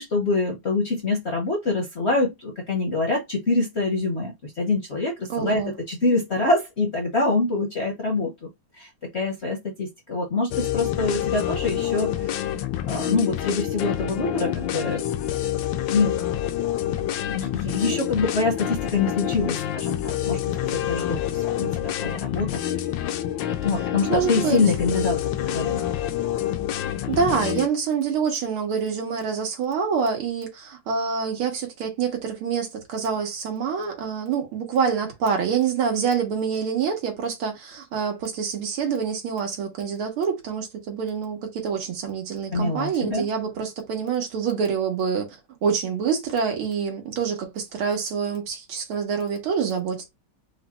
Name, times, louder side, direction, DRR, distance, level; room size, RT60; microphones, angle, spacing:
voice 1, 0.0-5.6 5.9-8.5 8.7-12.4 12.9-15.0 15.9-16.2 17.3-20.4 20.7-22.6 23.6-25.8 42.5-43.3, left 3 dB, 45° left, 0.9 m, -25 dB
voice 2, 5.3-5.8 24.1-24.6 27.1-50.1, right 6 dB, 80° right, 2.3 m, -26 dB
sound 1, 10.5-27.7, left 11 dB, 75° left, 1.1 m, -27 dB
4.9 x 2.3 x 4.1 m
omnidirectional pair, 2.3 m